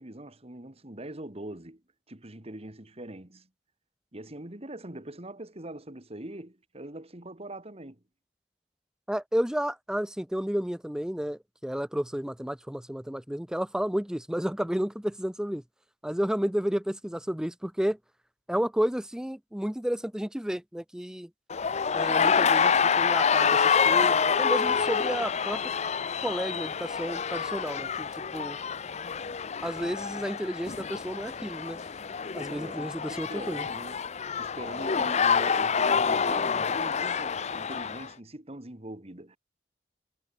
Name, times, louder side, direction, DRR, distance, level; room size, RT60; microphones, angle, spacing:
voice 1, 0.0-1.8 2.1-3.5 4.1-8.0 32.5-39.4, right 1 dB, 35° right, 2.3 m, -42 dB
voice 2, 9.1-15.6 16.0-18.0 18.5-21.3 21.9-25.7 26.2-28.6 29.6-31.8 32.3-33.6, equal, 5° right, 0.5 m, -31 dB
sound 1, 21.5-38.1, left 6 dB, 40° left, 0.6 m, -27 dB
head